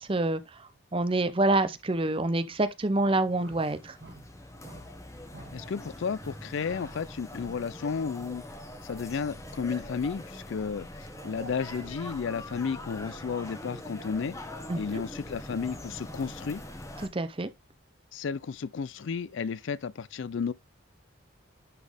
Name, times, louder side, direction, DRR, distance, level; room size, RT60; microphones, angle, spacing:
voice 1, 0.0-4.0 14.7-15.0 17.1-17.5, right 2 dB, 25° right, 0.6 m, -27 dB
sound 1, 2.9-17.1, left 1 dB, 15° left, 1.1 m, -43 dB
sound 2, 3.4-3.7 4.0-4.3 4.6-4.9 5.3-5.6 6.2-6.4 11.0-12.1, right 1 dB, 60° right, 4.9 m, -48 dB
voice 2, 5.5-8.4 8.8-14.4 14.8-16.6 18.1-20.5, left 5 dB, 60° left, 0.4 m, -33 dB
11.0 x 4.2 x 3.4 m
head